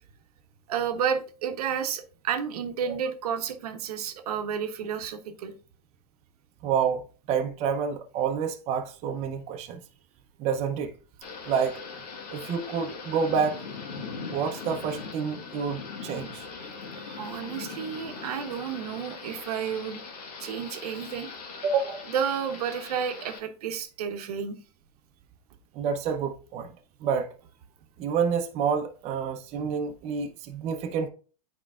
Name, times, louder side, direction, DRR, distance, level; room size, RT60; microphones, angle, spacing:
voice 1, 0.7-5.5 16.6-20.0 20.4-21.3 22.1-24.6, right 7 dB, 70° right, 0.9 m, -31 dB
voice 2, 6.6-9.8 10.4-10.9 11.5-11.8 12.3-13.6 14.3-16.5 21.6-22.1 25.7-26.7 27.0-27.3 28.0-31.1, right 6 dB, 35° right, 0.7 m, -28 dB
Thunder / Rain, 11.2-23.4, left 5 dB, 75° left, 1.4 m, -40 dB
8.5 x 4.6 x 2.4 m
hypercardioid pair, 125°, 20 cm